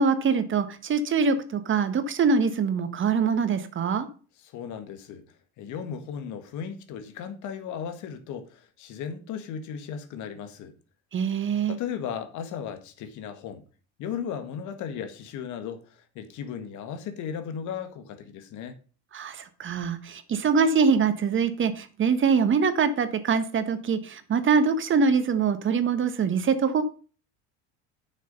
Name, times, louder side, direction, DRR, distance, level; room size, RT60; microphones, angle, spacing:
voice 1, 0.0-4.1 11.1-11.7 19.1-26.8, right 5 dB, 35° right, 1.5 m, -24 dB
voice 2, 4.5-5.2 5.6-10.7 11.7-13.6 14.0-18.8, left 7 dB, 60° left, 1.9 m, -36 dB
9.2 x 6.7 x 5.4 m
supercardioid pair, 90°, 33 cm